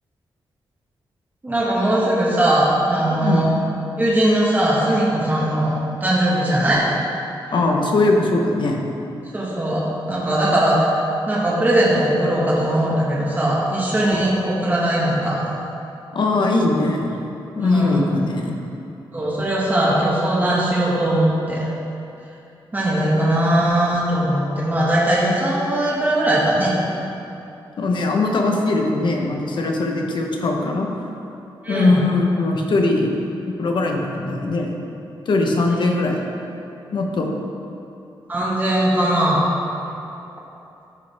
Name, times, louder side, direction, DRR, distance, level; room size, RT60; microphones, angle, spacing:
voice 1, 1.4-3.5 4.0-5.7 6.0-6.9 9.3-15.4 17.6-18.1 19.1-21.7 22.7-26.8 31.6-32.0 38.3-39.4, right 1 dB, 20° right, -6 dB, 1.6 m, -19 dB
voice 2, 7.5-8.8 14.0-14.2 16.1-17.1 17.5-18.6 27.8-30.9 31.7-33.2 33.6-34.7 35.3-36.3 36.9-37.3, left 2 dB, 60° left, 1 dB, 1.0 m, -20 dB
13.5 x 5.2 x 3.5 m, 2.8 s
wide cardioid pair, 150°, 9 cm